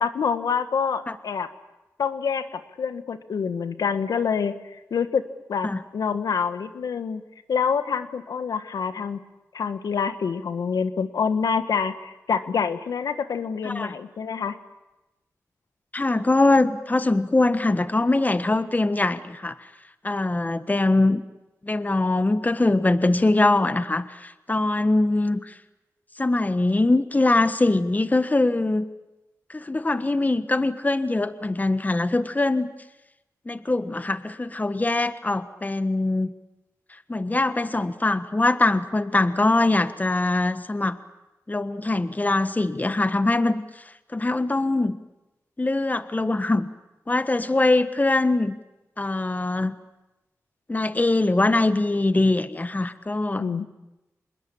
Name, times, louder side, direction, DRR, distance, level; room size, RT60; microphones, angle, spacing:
voice 1, 0.0-1.5 2.0-5.2 5.5-7.2 7.5-9.2 9.5-14.5 53.4-53.7, left 6 dB, 90° left, 11 dB, 1.5 m, -26 dB
voice 2, 15.9-19.7 20.0-21.2 21.6-25.5 26.2-28.8 29.5-32.7 33.4-36.3 37.1-41.0 41.5-43.6 44.1-45.0 45.6-46.7 47.1-48.5 49.0-49.7 50.7-53.4, left 2 dB, 25° left, 12 dB, 1.4 m, -22 dB
25.5 x 21.0 x 8.7 m, 0.99 s
cardioid pair, 55°, 6 cm